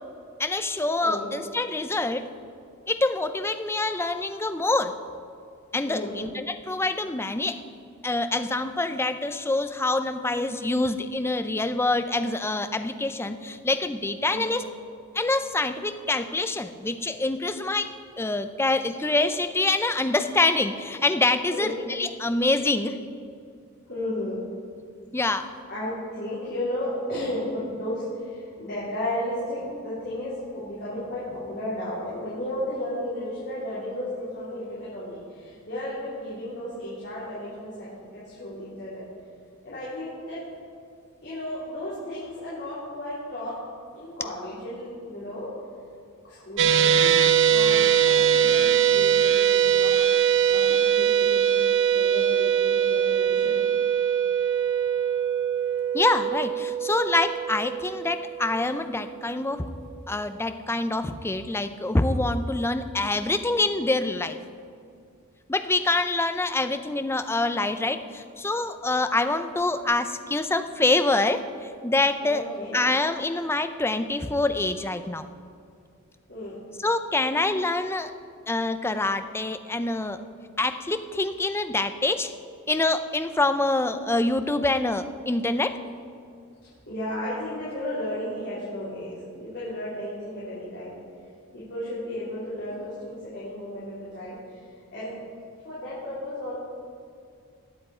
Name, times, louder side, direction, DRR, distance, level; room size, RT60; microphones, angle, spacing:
voice 1, 0.4-2.3 2.9-4.9 5.7-7.6 8.0-14.6 15.1-23.0 25.1-25.5 55.9-59.7 60.1-64.4 65.5-72.4 72.7-75.3 76.8-78.1 78.5-80.2 80.6-82.3 82.7-85.7, left 2 dB, 10° left, 9 dB, 0.5 m, -25 dB
voice 2, 5.8-6.1 14.3-14.5 21.5-21.8 23.9-24.4 25.7-37.9 38.1-39.0 39.6-40.4 41.2-43.5 43.9-45.5 46.2-47.1 47.5-49.9 50.5-53.6 72.2-72.8 76.3-76.6 86.9-90.9 91.5-94.6 94.9-95.1 95.6-96.5, left 1 dB, 55° left, -10 dB, 3.6 m, -34 dB
sound 1, 46.6-58.9, right 8 dB, 60° right, 0.5 m, -22 dB
20.0 x 7.6 x 4.4 m, 2.4 s
head